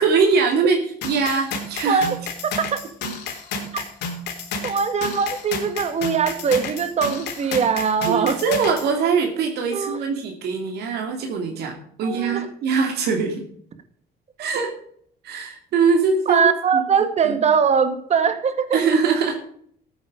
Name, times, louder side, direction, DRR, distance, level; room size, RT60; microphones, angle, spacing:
voice 1, 0.0-2.1 8.1-13.4 14.4-14.7 15.2-17.4 18.7-19.4, right 5 dB, 75° right, 2 dB, 2.7 m, -22 dB
sound 1, 1.0-8.9, left 4 dB, 80° left, 3.6 m, -31 dB
voice 2, 4.6-8.4 9.7-10.0 12.0-12.4 16.3-18.8, right 6 dB, 40° right, 9 dB, 1.6 m, -21 dB
13.5 x 9.3 x 5.0 m, 0.62 s
cardioid pair, 110°, 17 cm